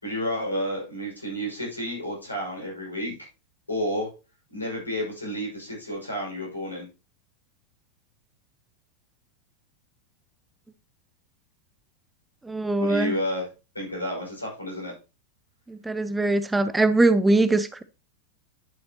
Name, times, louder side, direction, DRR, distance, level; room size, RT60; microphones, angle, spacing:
voice 1, 0.0-3.1 3.7-4.1 4.5-6.9 12.8-13.5 13.7-14.9, equal, 80° left, 5.6 m, -30 dB
voice 2, 12.4-13.1 15.7-17.8, right 2 dB, 10° right, 0.5 m, -22 dB
11.0 x 7.1 x 2.9 m
figure-of-eight pair, 90°, 0 cm